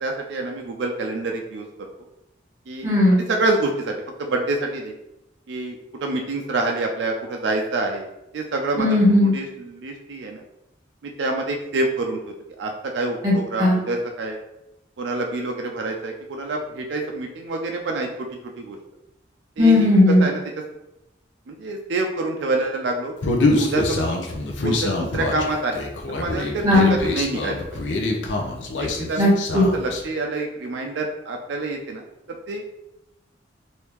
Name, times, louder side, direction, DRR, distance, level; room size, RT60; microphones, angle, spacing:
voice 1, 0.0-1.7 2.7-2.9 3.3-4.9 5.5-8.1 8.3-8.9 9.3-10.4 11.2-12.2 12.6-14.4 15.0-18.8 19.6-20.4 21.5-23.1 23.5-24.2 24.6-25.9 26.1-27.8 28.8-32.0 32.5-32.6, right 2 dB, 75° right, 2 dB, 0.4 m, -27 dB
voice 2, 2.8-3.2 8.8-9.3 13.2-13.8 19.6-20.2 26.6-26.9 29.2-29.6, left 2 dB, 15° right, -6 dB, 1.3 m, -16 dB
Human voice, 23.2-30.0, left 2 dB, 80° left, 0.5 m, -25 dB
3.4 x 2.6 x 3.0 m, 0.89 s
head